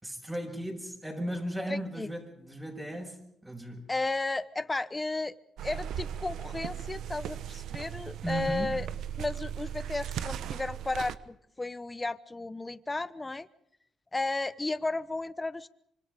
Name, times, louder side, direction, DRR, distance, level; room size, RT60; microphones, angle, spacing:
voice 1, 0.0-3.9 8.2-8.8, right 1 dB, 15° right, 0 dB, 6.4 m, -36 dB
voice 2, 1.7-2.1 3.9-5.4 5.6-8.9 9.2-13.5 14.1-15.7, left 2 dB, 20° left, 15 dB, 1.0 m, -34 dB
sound 1, 5.6-11.1, right 9 dB, 75° right, 1.0 m, -37 dB
25.5 x 25.5 x 5.1 m, 0.75 s
cardioid pair, 90°, 0 cm